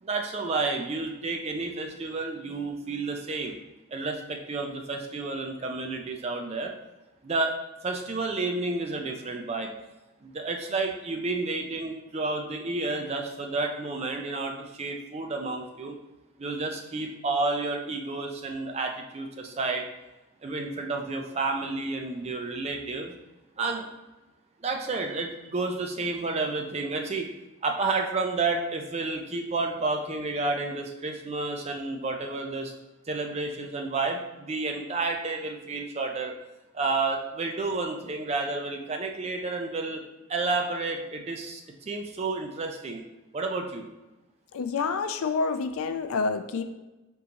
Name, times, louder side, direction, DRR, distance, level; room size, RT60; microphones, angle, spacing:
voice 1, 0.0-3.5 3.9-6.7 7.2-7.5 7.8-9.7 10.2-16.0 16.4-19.9 20.4-23.1 23.6-23.9 24.6-27.3 27.6-32.7 33.1-36.3 36.7-40.0 40.3-43.0 43.3-43.9, right 3 dB, 30° right, 3 dB, 0.4 m, -30 dB
voice 2, 44.5-46.6, left 4 dB, 70° left, 9 dB, 0.4 m, -28 dB
3.9 x 3.6 x 2.9 m, 1.1 s
head